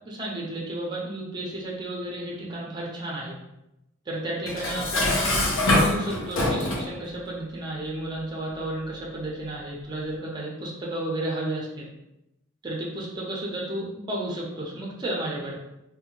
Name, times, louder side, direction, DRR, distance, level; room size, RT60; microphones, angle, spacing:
voice 1, 0.1-3.4 4.1-11.9 12.6-15.5, right 1 dB, 20° right, -3 dB, 0.5 m, -32 dB
Dishes pots and pans, 4.5-6.9, left 1 dB, 75° left, 0.6 m, -24 dB
2.7 x 2.1 x 2.9 m, 0.88 s
head